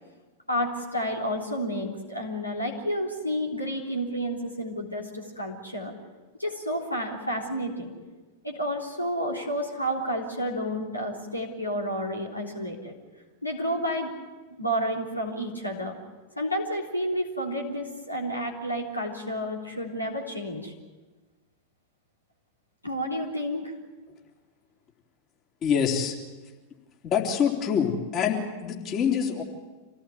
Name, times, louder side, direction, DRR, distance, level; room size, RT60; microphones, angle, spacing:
voice 1, 0.5-5.9 6.4-7.9 8.4-13.0 13.4-14.1 14.6-16.0 16.4-20.7 22.8-23.7, equal, 85° left, 0 dB, 3.6 m, -30 dB
voice 2, 25.6-26.2 27.0-29.4, left 7 dB, 35° left, 1 dB, 3.7 m, -25 dB
26.5 x 17.5 x 9.4 m, 1.3 s
figure-of-eight pair, 90°, 0 cm